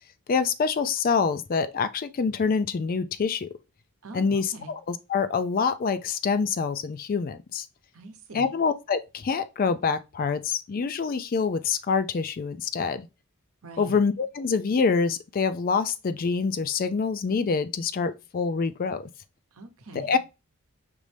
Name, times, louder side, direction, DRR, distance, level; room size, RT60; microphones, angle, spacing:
voice 1, 0.3-3.5 4.1-7.7 8.3-13.1 13.8-19.1 20.0-20.2, left 5 dB, 40° left, 0.3 m, -26 dB
voice 2, 4.0-4.7 7.9-8.6 13.6-14.0 19.5-20.2, right 1 dB, 75° right, 0.9 m, -43 dB
5.2 x 3.1 x 3.3 m
head